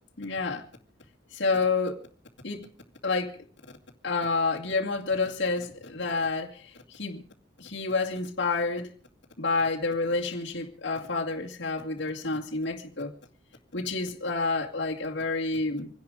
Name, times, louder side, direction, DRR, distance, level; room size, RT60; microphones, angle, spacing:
voice 1, 0.2-0.7 1.3-2.0 2.4-2.7 3.0-3.4 4.0-7.2 7.6-8.9 9.4-13.1 13.7-15.9, left 3 dB, 65° left, 2.4 m, -29 dB
26.5 x 10.5 x 5.1 m
head